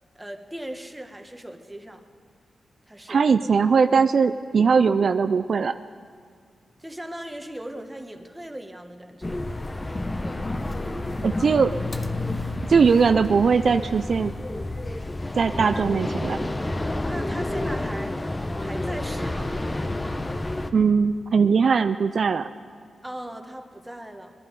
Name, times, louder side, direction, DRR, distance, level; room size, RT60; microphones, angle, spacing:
voice 1, 0.1-2.0 2.9-3.2 6.8-9.4 15.7-15.9 17.1-18.2 18.6-19.6 23.0-24.3, right 1 dB, 10° right, 5 dB, 1.4 m, -38 dB
voice 2, 3.1-5.7 11.2-11.7 12.7-14.3 15.4-16.5 20.7-22.5, right 5 dB, 60° right, 10 dB, 0.4 m, -20 dB
sound 1, 9.2-20.7, left 2 dB, 20° left, 0.9 m, -29 dB
21.5 x 11.5 x 5.3 m, 2.1 s
cardioid pair, 80°, 0 cm